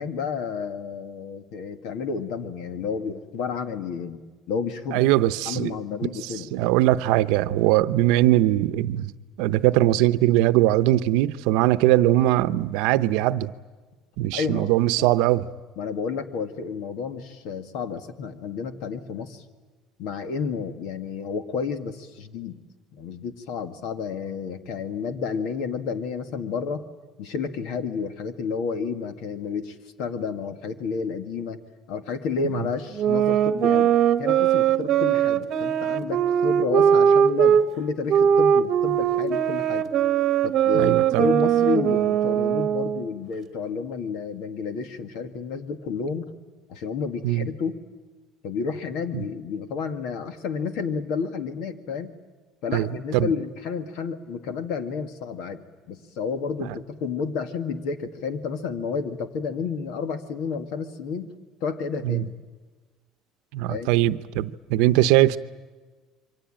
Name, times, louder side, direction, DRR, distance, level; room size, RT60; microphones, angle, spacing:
voice 1, 0.0-4.2 4.5-5.1 5.5-6.6 14.3-15.1 15.8-19.4 20.0-22.6 22.9-26.9 27.2-31.6 31.9-33.9 34.2-39.9 40.4-46.2 46.7-47.8 48.4-52.2 52.6-61.3 61.6-62.3 63.7-63.9, left 5 dB, 65° left, 2.0 m, -31 dB
voice 2, 4.9-5.7 6.2-9.1 9.4-13.5 14.2-15.5 40.7-41.2 47.2-47.5 49.1-49.2 52.7-52.9 53.1-53.3 56.6-56.7 62.0-62.3 63.5-65.4, right 15 dB, 75° right, 0.8 m, -21 dB
sound 1, 33.0-37.6 38.1-43.1, right 9 dB, 40° right, 1.2 m, -20 dB
27.5 x 24.0 x 9.0 m
cardioid pair, 170°, 0 cm